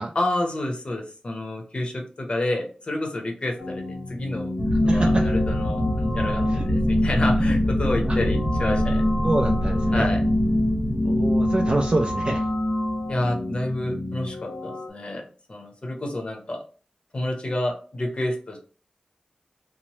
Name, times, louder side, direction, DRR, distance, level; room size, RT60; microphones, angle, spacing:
voice 1, 0.1-4.5 4.8-9.0 9.9-10.2 13.1-15.2 15.5-16.6 17.1-18.6, left 1 dB, 45° left, 2 dB, 0.8 m, -29 dB
sound 1, 3.6-14.9, left 2 dB, 90° left, 0.8 m, -33 dB
sound 2, 4.6-14.0, left 1 dB, 10° left, 0.7 m, -23 dB
voice 2, 4.9-5.3 6.5-6.6 9.2-10.1 11.1-12.4, right 2 dB, 40° right, 2 dB, 0.3 m, -25 dB
2.9 x 2.0 x 3.1 m, 0.39 s
wide cardioid pair, 80°, 3 cm